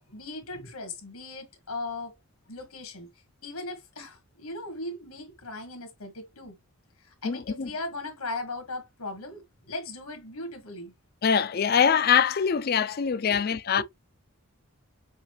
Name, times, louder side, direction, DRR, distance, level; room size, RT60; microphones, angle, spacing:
voice 1, 0.0-2.2 2.5-3.1 3.4-6.6 7.0-10.9 13.3-13.4 13.8-13.9, left 2 dB, 90° left, 1.6 m, -38 dB
voice 2, 7.2-7.7 11.2-13.8, left 7 dB, 45° left, 0.4 m, -23 dB
6.5 x 2.6 x 3.1 m
head